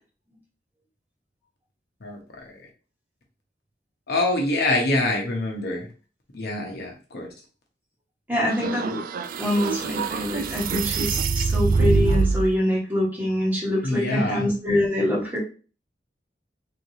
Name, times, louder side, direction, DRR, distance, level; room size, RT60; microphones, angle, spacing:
voice 1, 2.0-2.6 4.1-5.9 6.3-7.3 13.8-14.5, left 2 dB, 65° left, 0 dB, 1.0 m, -25 dB
voice 2, 8.3-9.0 9.4-15.4, left 1 dB, 10° right, -4 dB, 1.4 m, -25 dB
sound 1, 8.5-12.5, right 4 dB, 55° right, 0.3 m, -24 dB
3.6 x 3.2 x 2.7 m, 0.36 s
head